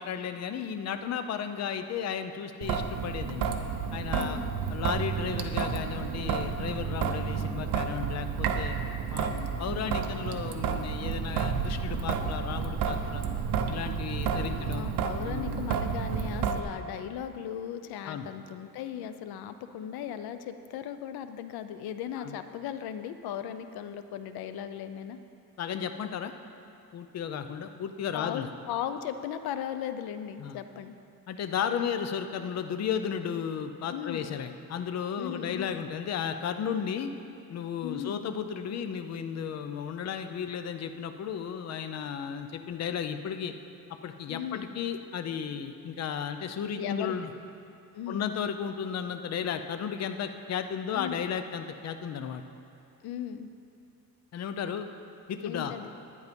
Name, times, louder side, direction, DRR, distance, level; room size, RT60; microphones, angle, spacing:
voice 1, 0.0-3.5 3.9-4.4 4.7-8.8 9.1-13.2 13.7-14.9 15.2-15.6 18.0-18.3 22.2-22.4 25.6-26.3 26.9-28.5 30.4-30.6 31.3-37.1 37.5-43.5 44.0-47.3 48.1-52.4 54.3-54.9 55.3-55.8, left 7 dB, 45° left, 8 dB, 0.6 m, -34 dB
Traffic noise roadway noise / Drip / Trickle dribble, 2.6-16.6, right 6 dB, 70° right, 0.9 m, -31 dB
voice 2, 4.1-4.5 14.5-25.2 28.1-30.9 33.9-34.4 35.2-35.8 37.8-38.3 44.3-44.8 46.7-47.2 47.9-48.3 50.9-51.2 53.0-53.5 55.4-55.9, left 9 dB, 85° left, 10 dB, 0.7 m, -37 dB
11.0 x 9.4 x 5.2 m, 2.6 s
cardioid pair, 145°, 36 cm